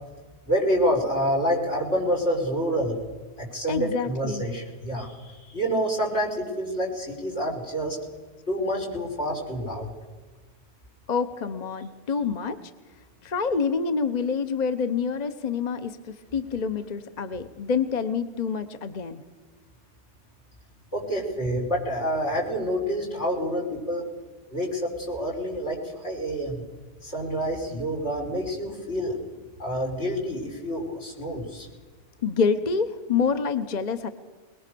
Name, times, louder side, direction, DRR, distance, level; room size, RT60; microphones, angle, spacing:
voice 1, 0.5-2.9 3.4-8.0 8.5-9.9 20.9-24.0 24.5-26.6 27.0-29.2 29.6-31.7, equal, 85° left, 1 dB, 5.7 m, -27 dB
voice 2, 3.7-4.4 11.1-12.6 13.2-16.0 16.3-19.2 32.2-34.1, left 5 dB, 40° left, 9 dB, 1.0 m, -27 dB
22.0 x 21.5 x 6.9 m, 1.3 s
omnidirectional pair, 1.2 m